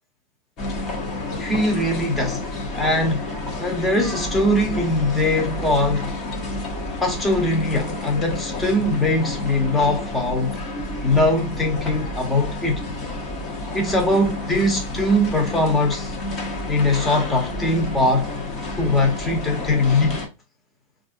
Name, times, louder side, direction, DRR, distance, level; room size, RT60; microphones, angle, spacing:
sound 1, 0.6-20.3, left 2 dB, 35° left, 1.0 m, -30 dB
voice 1, 1.4-2.4 2.7-6.1 7.0-10.6 11.0-12.8 13.7-16.2 16.7-18.3 18.8-20.2, left 1 dB, 10° left, 1.0 m, -21 dB
4.1 x 2.6 x 2.5 m
supercardioid pair, 140°, 0 cm